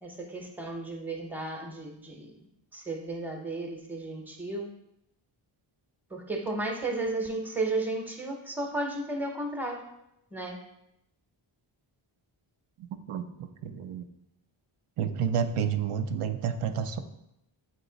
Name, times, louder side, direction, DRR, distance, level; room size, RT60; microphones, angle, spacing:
voice 1, 0.0-2.3 2.7-4.7 6.1-9.8 10.3-10.6, right 2 dB, 5° right, 2 dB, 0.7 m, -33 dB
voice 2, 12.8-14.1 15.0-17.0, right 7 dB, 90° right, 8 dB, 0.6 m, -30 dB
8.2 x 3.0 x 3.9 m, 0.83 s
wide cardioid pair, 135°, 49 cm